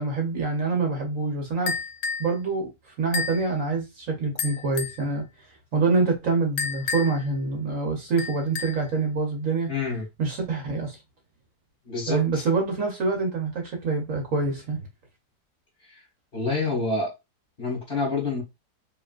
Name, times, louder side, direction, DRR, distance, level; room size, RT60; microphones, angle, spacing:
voice 1, 0.0-1.8 2.2-9.7 10.2-11.0 12.1-14.8, right 4 dB, 55° right, 1.2 m, -26 dB
sound 1, 1.7-2.3 3.1-3.5 4.4-5.0 6.6-7.3 8.2-8.9, left 5 dB, 80° left, 1.1 m, -31 dB
voice 2, 9.7-10.0 11.8-12.4 15.9-16.0 16.3-17.1 17.6-18.4, left 3 dB, 35° left, 1.7 m, -27 dB
4.8 x 3.0 x 2.4 m
omnidirectional pair, 1.8 m